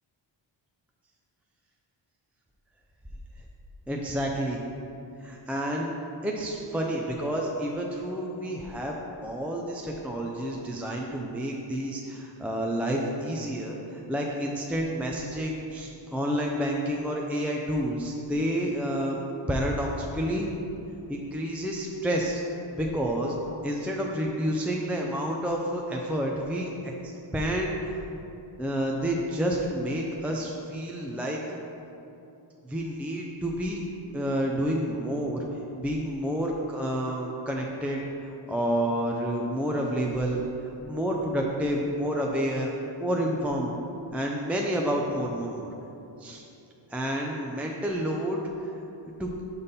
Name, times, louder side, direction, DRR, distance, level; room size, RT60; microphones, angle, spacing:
voice 1, 3.9-4.6 5.2-5.9 6.2-19.2 19.5-20.5 21.1-22.4 22.7-27.8 28.6-31.6 32.6-33.8 34.1-35.4 35.7-43.7 44.1-45.7 46.2-46.4 46.9-48.4 49.2-49.3, equal, 5° right, -1 dB, 0.3 m, -29 dB
5.6 x 5.4 x 4.0 m, 2.8 s
wide cardioid pair, 120°, 48 cm